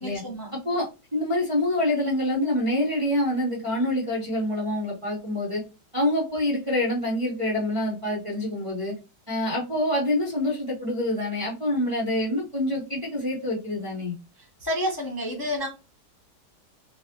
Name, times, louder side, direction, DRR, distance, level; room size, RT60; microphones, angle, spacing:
voice 1, 0.0-0.5 14.6-15.7, left 1 dB, 25° left, -2 dB, 0.4 m, -29 dB
voice 2, 0.6-5.6 5.9-8.9 9.3-14.1, left 1 dB, 30° right, -5 dB, 0.5 m, -26 dB
3.8 x 2.1 x 2.8 m, 0.29 s
omnidirectional pair, 1.9 m